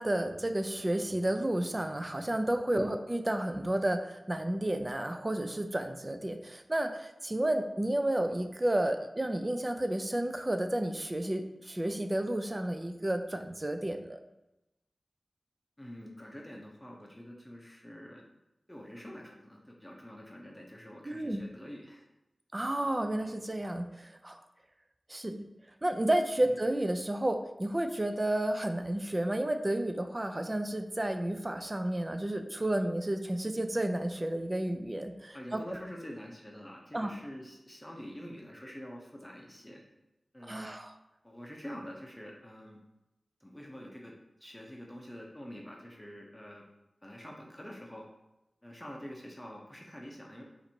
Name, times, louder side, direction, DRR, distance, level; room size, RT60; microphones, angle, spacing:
voice 1, 0.0-14.2 21.0-21.4 22.5-24.4 25.1-25.5 25.8-35.8 36.9-37.1 40.4-40.9, right 1 dB, 25° right, 6 dB, 0.4 m, -31 dB
voice 2, 15.8-18.2 18.7-22.0 26.4-26.6 35.3-39.8 40.3-40.7 41.2-42.8 43.4-44.1 44.4-46.6 47.0-48.0 48.6-50.4, equal, 10° left, -1 dB, 0.7 m, -46 dB
4.1 x 2.6 x 4.4 m, 0.93 s
wide cardioid pair, 65°, 0 cm